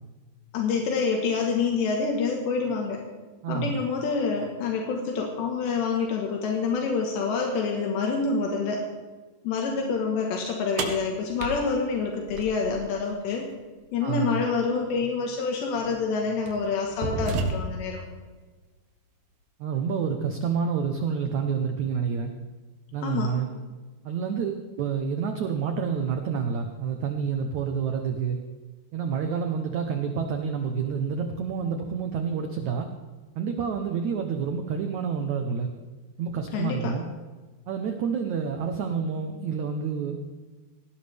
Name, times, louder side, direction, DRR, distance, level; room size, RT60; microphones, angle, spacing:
voice 1, 0.5-3.0 3.5-8.9 9.4-13.5 13.9-18.0 23.0-23.3 36.5-36.9, left 5 dB, 85° left, 1 dB, 3.7 m, -27 dB
voice 2, 3.4-3.8 14.0-14.4 19.6-22.3 22.9-23.5 24.1-28.4 28.9-32.9 33.4-35.7 36.2-37.1 37.7-40.2, right 6 dB, 85° right, 5 dB, 1.6 m, -28 dB
sound 1, 10.8-13.0 14.8-14.9 15.8-16.0 16.5-18.0, right 3 dB, 70° right, 3.2 m, -31 dB
18.5 x 17.5 x 3.5 m, 1.3 s
omnidirectional pair, 4.9 m